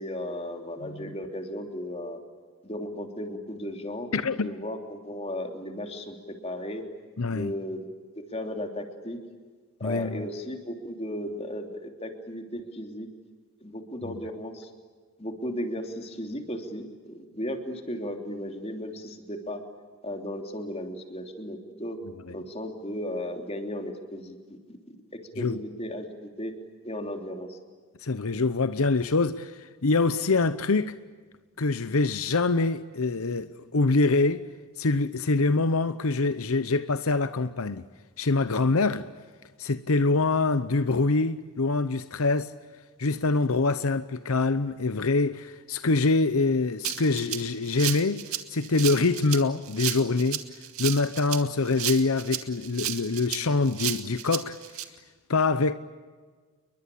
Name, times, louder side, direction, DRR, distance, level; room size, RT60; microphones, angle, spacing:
voice 1, 0.0-2.2 2.6-6.8 7.3-7.9 8.3-9.2 9.8-13.1 13.6-14.7 15.2-19.6 20.0-22.0 22.3-24.6 24.9-25.0 25.4-26.0 26.4-26.5 26.8-27.6, equal, 25° left, 3.2 m, -35 dB
voice 2, 0.8-1.1 4.1-4.5 7.2-7.5 9.8-10.3 14.0-14.1 22.3-22.4 25.4-25.6 28.0-31.0 31.6-34.5 34.8-37.8 38.2-39.1 39.6-42.5 43.0-48.2 48.5-50.4 50.8-54.6 55.3-55.7, left 3 dB, 75° left, 0.8 m, -25 dB
Rattle (instrument), 46.8-54.8, right 12 dB, 80° right, 2.1 m, -33 dB
30.0 x 22.5 x 8.6 m
head